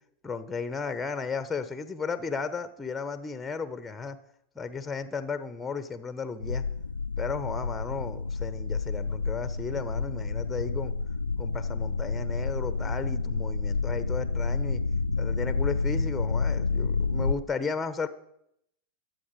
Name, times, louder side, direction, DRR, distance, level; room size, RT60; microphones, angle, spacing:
voice 1, 0.2-4.2 4.5-6.6 7.2-10.9 11.4-14.8 15.2-18.1, left 5 dB, 10° left, 12 dB, 1.2 m, -34 dB
sound 1, 6.4-17.3, left 4 dB, 80° left, 0.5 m, -29 dB
22.5 x 8.1 x 4.9 m, 0.75 s
figure-of-eight pair, 90°, 0 cm